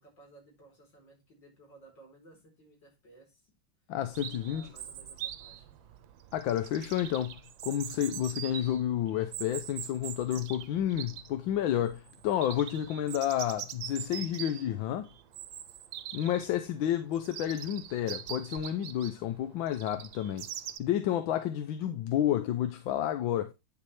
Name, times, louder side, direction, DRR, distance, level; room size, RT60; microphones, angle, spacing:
voice 1, 0.0-3.5 4.4-5.7, right 2 dB, 65° left, 5.0 m, -57 dB
voice 2, 3.9-4.7 6.3-15.1 16.1-20.5 20.8-23.5, left 11 dB, 85° left, 1.5 m, -30 dB
Chirp tweet, 4.1-20.8, right 10 dB, 80° right, 1.6 m, -43 dB
9.7 x 6.9 x 3.3 m
omnidirectional pair, 2.1 m